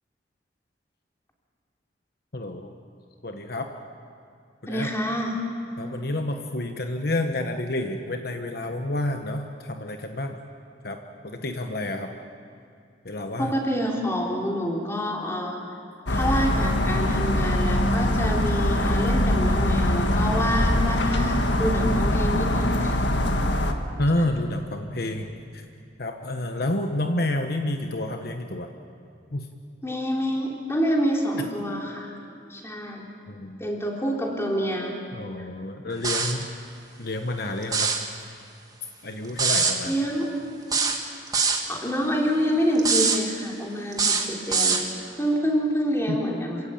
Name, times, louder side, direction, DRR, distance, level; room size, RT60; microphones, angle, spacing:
voice 1, 2.3-2.8 3.2-3.7 4.6-4.9 5.8-10.4 10.8-11.0 11.2-12.1 13.0-13.5 24.0-25.6 26.0-28.7 29.3-29.5 33.3-33.6 35.1-36.5 37.0-37.9 39.0-39.9 46.1-46.2, left 1 dB, 60° left, 5 dB, 1.2 m, -29 dB
voice 2, 4.7-5.4 13.4-15.6 16.1-23.0 24.2-24.3 29.8-32.1 32.5-33.1 33.6-34.9 39.8-40.3 41.7-44.8 45.2-46.6, equal, 15° left, -1 dB, 3.5 m, -27 dB
sound 1, 16.1-23.7, left 1 dB, 85° left, 1.6 m, -23 dB
sound 2, 36.0-36.4 37.6-38.0 39.4-39.8 40.7-41.6 42.8-43.2 43.9-44.9, right 5 dB, 20° right, 1.8 m, -23 dB
27.5 x 16.5 x 8.7 m, 2.4 s
head